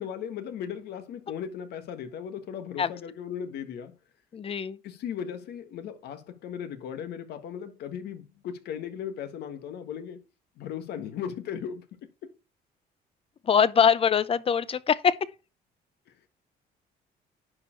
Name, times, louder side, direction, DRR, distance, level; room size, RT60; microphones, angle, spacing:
voice 1, 0.0-3.9 4.8-10.2 10.6-12.4 16.1-16.3, left 8 dB, 75° left, 1.6 m, -37 dB
voice 2, 4.3-4.8 13.4-15.2, left 7 dB, 35° left, 0.7 m, -23 dB
10.5 x 4.6 x 4.5 m
cardioid pair, 110°, 17 cm